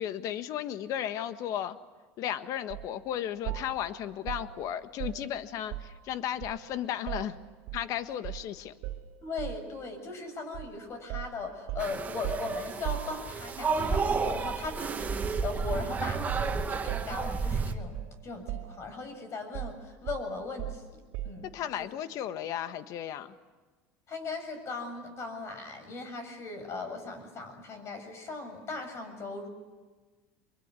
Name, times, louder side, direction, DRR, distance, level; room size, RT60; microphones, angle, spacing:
voice 1, 0.0-1.8 2.2-7.4 7.7-8.7 21.5-23.3, left 10 dB, 55° left, 11 dB, 1.5 m, -34 dB
sound 1, 2.7-2.9 3.5-6.1 6.4-7.9 8.2-8.5 8.8-9.7 10.5-10.7 11.1-13.7 15.2-15.5 15.7-18.2 18.5-19.1 19.5-21.5, right 13 dB, 70° right, 2.5 m, -39 dB
voice 2, 9.2-17.9 18.2-21.5 21.8-21.9 24.1-29.5, left 3 dB, 40° left, 7 dB, 7.4 m, -38 dB
sound 2, 11.8-17.7, right 4 dB, 25° right, 2.3 m, -31 dB
24.0 x 23.0 x 9.9 m, 1.3 s
supercardioid pair, 105°, 7 cm